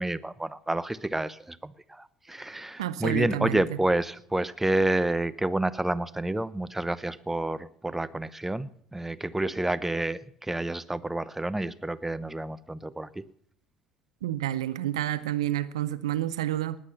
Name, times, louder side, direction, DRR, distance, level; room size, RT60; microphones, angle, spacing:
voice 1, 0.0-13.2, right 1 dB, 10° right, 0.8 m, -29 dB
voice 2, 2.8-3.6 14.2-16.8, right 13 dB, 85° right, 0.7 m, -29 dB
20.0 x 8.5 x 5.7 m
hypercardioid pair, 65°, 3 cm